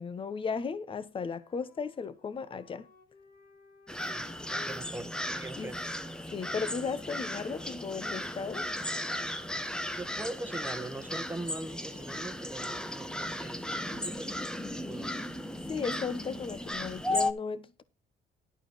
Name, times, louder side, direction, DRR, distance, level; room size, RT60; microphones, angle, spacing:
voice 1, 0.0-2.9 5.6-5.7 6.3-8.6 15.7-17.8, left 5 dB, 30° left, 1.1 m, -35 dB
Wind instrument woodwind instrument, 1.3-7.7 8.4-14.4, left 3 dB, 60° left, 2.0 m, -58 dB
sound 1, 3.9-17.3, left 1 dB, 5° left, 0.9 m, -36 dB
voice 2, 3.9-5.8 9.9-15.2, right 2 dB, 10° right, 1.4 m, -42 dB
11.5 x 4.8 x 6.1 m
cardioid pair, 110°, 17 cm